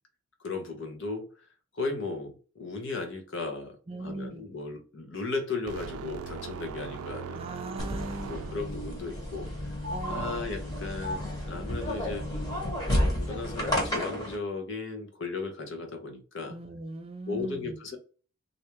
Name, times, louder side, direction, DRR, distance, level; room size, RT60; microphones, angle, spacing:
voice 1, 0.4-1.5 1.7-7.5 8.3-9.5 10.1-12.3 12.9-16.6 17.3-18.0, left 3 dB, 55° left, 0.9 m, -36 dB
voice 2, 3.9-4.4 7.3-8.6 9.9-10.5 16.5-17.8, right 2 dB, 25° right, 0.4 m, -39 dB
sound 1, 5.7-8.9, right 6 dB, 90° right, 0.4 m, -40 dB
sound 2, 7.8-14.3, left 1 dB, 20° left, 1.2 m, -31 dB
3.3 x 2.6 x 3.0 m
head